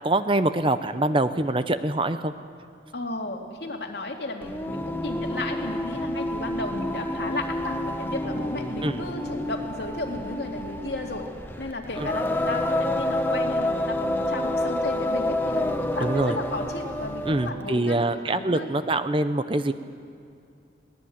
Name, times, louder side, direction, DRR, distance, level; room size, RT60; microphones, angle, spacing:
voice 1, 0.0-2.3 8.8-9.0 12.0-12.1 16.0-16.4 17.3-19.7, right 2 dB, 30° right, 11 dB, 0.7 m, -24 dB
voice 2, 2.9-11.3 11.6-18.0 18.3-18.7, left 2 dB, 65° left, 2 dB, 2.6 m, -34 dB
Singing, 4.4-17.6, left 1 dB, 10° left, 1.1 m, -29 dB
22.5 x 19.0 x 8.7 m, 2.4 s
head